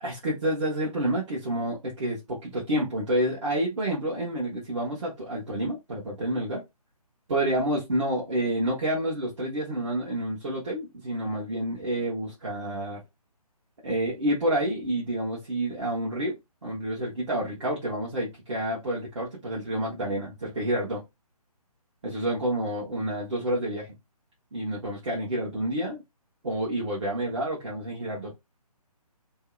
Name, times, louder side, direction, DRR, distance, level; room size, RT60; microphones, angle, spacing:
voice 1, 0.0-6.6 7.3-13.0 13.8-16.4 16.6-21.0 22.0-23.9 24.5-26.0 26.4-28.3, right 1 dB, 45° right, 1.0 m, -29 dB
2.7 x 2.0 x 2.3 m
figure-of-eight pair, 140°, 20 cm